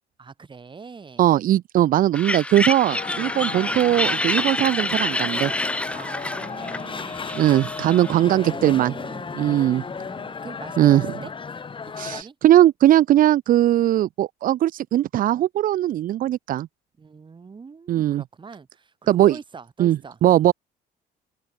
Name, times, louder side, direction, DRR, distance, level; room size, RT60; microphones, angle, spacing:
voice 1, 0.2-1.2 3.1-3.4 5.9-7.4 7.9-11.3 12.0-12.3 17.0-20.2, right 5 dB, 30° right, 6.7 m, -42 dB
voice 2, 1.2-5.5 7.3-8.9 9.4-9.8 10.8-11.1 12.0-16.7 17.9-18.2 19.1-19.4 19.8-20.5, right 13 dB, 55° right, 0.6 m, -19 dB
sound 1, 2.1-8.2, left 1 dB, 5° left, 0.8 m, -27 dB
sound 2, 2.9-12.2, left 5 dB, 30° left, 4.4 m, -34 dB
cardioid pair, 110°, 17 cm